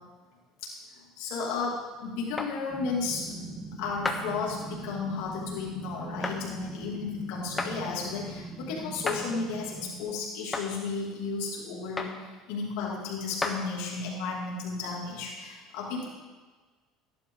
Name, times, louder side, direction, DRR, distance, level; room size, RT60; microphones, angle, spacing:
voice 1, 1.2-16.1, left 4 dB, 80° left, -3 dB, 2.7 m, -34 dB
sound 1, 2.4-2.5 4.0-4.2 6.2-6.4 7.6-7.7 9.0-9.2 10.5-10.7 12.0-12.2 13.4-13.6, left 3 dB, 15° left, 1.2 m, -31 dB
sound 2, 2.7-10.0, right 2 dB, 5° right, 3.7 m, -41 dB
14.0 x 11.5 x 3.9 m, 1.3 s
cardioid pair, 125°, 0 cm